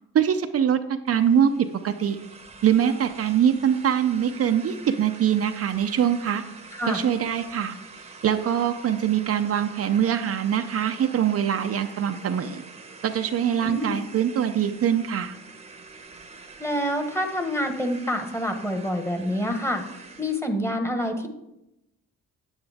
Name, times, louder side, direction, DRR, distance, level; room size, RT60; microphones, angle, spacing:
voice 1, 0.1-2.2 2.6-6.4 6.8-7.7 8.2-12.6 13.0-15.4, right 9 dB, 50° right, 7 dB, 0.6 m, -23 dB
sound 1, 1.1-20.4, right 4 dB, 20° right, 1.0 m, -45 dB
voice 2, 13.6-14.0 16.6-19.8 20.2-21.3, equal, 10° left, 5 dB, 1.4 m, -27 dB
9.4 x 9.0 x 3.5 m, 0.87 s
cardioid pair, 90°, 30 cm